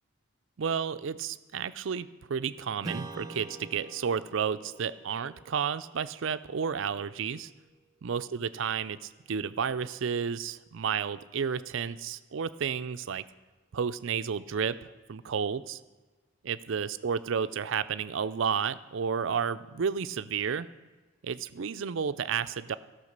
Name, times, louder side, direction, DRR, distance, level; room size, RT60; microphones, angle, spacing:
voice 1, 0.6-7.5 8.0-13.2 13.7-15.8 16.4-20.7 21.2-22.8, right 6 dB, 60° right, 13 dB, 0.4 m, -32 dB
Strum, 2.8-7.8, right 2 dB, 15° right, 0.6 m, -45 dB
14.0 x 5.7 x 6.6 m, 1.3 s
head